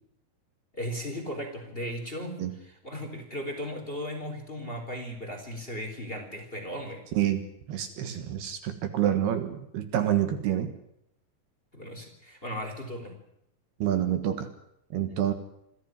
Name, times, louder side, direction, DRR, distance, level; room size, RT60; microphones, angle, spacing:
voice 1, 0.7-7.0 11.7-13.2, equal, 15° left, 5 dB, 3.5 m, -36 dB
voice 2, 7.1-10.7 13.8-14.5 14.9-15.3, right 11 dB, 65° right, 9 dB, 3.3 m, -28 dB
26.5 x 14.0 x 9.2 m, 0.79 s
omnidirectional pair, 5.1 m